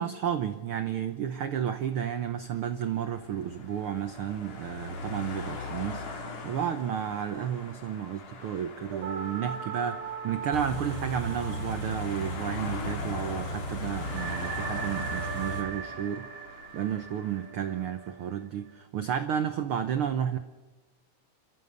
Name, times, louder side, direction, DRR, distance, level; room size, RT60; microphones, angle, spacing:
voice 1, 0.0-16.3 16.7-20.4, right 9 dB, 90° right, 9 dB, 1.2 m, -32 dB
sound 1, 2.4-17.8, left 3 dB, 85° left, 4.3 m, -42 dB
sound 2, 9.0-13.0 13.3-13.4 14.0-18.7, right 7 dB, 55° right, 1.4 m, -39 dB
Car / Idling, 10.5-15.6, equal, 25° left, 3.5 m, -36 dB
27.5 x 14.5 x 6.8 m, 1.2 s
omnidirectional pair, 3.6 m